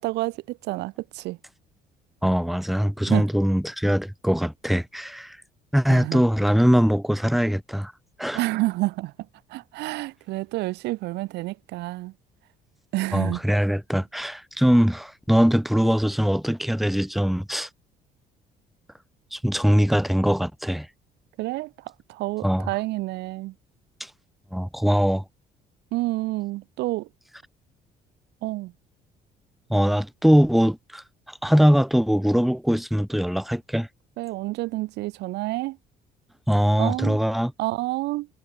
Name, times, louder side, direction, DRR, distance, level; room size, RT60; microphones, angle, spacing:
voice 1, 0.0-1.4 3.1-3.3 5.9-6.2 8.3-9.1 9.5-12.1 12.9-13.4 21.4-23.5 25.9-27.1 28.4-28.7 34.2-35.8 36.8-37.2 37.6-38.3, right 19 dB, 85° right, 1.7 m, -29 dB
voice 2, 2.2-5.4 5.7-7.9 8.2-8.4 13.1-17.7 19.3-20.9 22.4-22.7 24.0-24.1 24.5-25.2 29.7-33.9 36.5-37.5, equal, ahead, 1.9 m, -22 dB
cardioid pair, 110°, 17 cm